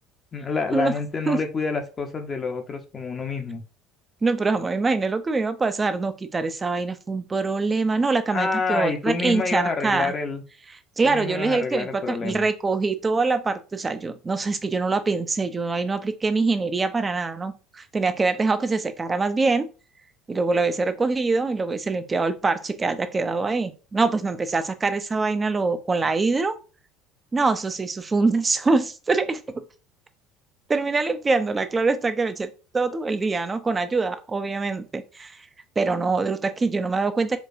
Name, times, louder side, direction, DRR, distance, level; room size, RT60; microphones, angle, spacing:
voice 1, 0.3-3.6 8.3-10.4 11.0-12.4, left 4 dB, 35° left, 5 dB, 0.6 m, -28 dB
voice 2, 4.2-10.1 11.0-19.7 20.3-26.5 27.3-29.6 30.7-35.4 35.8-37.4, right 3 dB, 25° right, 10 dB, 0.5 m, -24 dB
4.4 x 2.2 x 2.5 m, 0.33 s
hypercardioid pair, 65°, 0 cm